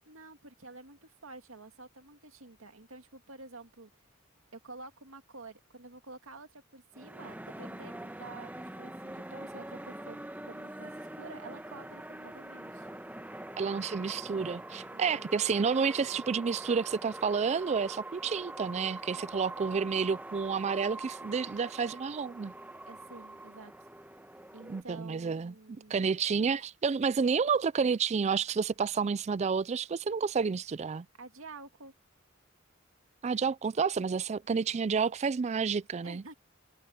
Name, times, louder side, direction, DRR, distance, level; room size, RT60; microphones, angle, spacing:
voice 1, 0.1-3.9 4.5-10.2 10.5-12.9 14.9-15.3 22.9-23.7 24.5-26.1 31.2-31.9 36.0-36.3, right 3 dB, 85° right, 2.2 m, -49 dB
sound 1, 6.9-24.8, right 1 dB, 10° right, 1.3 m, -44 dB
voice 2, 13.6-22.5 24.7-31.1 33.2-36.2, right 5 dB, 35° right, 0.4 m, -30 dB
head